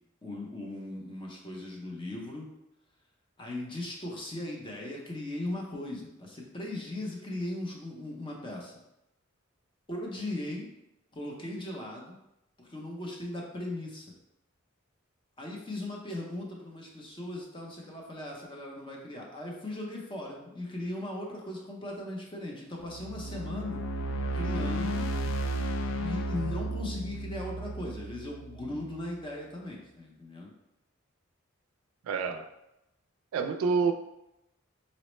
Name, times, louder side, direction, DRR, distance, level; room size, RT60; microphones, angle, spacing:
voice 1, 0.2-2.5 3.4-8.8 9.9-10.7 11.1-12.2 12.6-14.1 15.4-23.8 24.3-25.1 26.0-30.5, left 1 dB, 25° left, -1 dB, 0.6 m, -38 dB
sound 1, 22.8-29.0, right 1 dB, 70° left, 0.3 m, -33 dB
voice 2, 32.1-32.4 33.3-33.9, right 5 dB, 85° right, 7 dB, 0.3 m, -27 dB
4.0 x 2.0 x 3.0 m, 0.88 s
head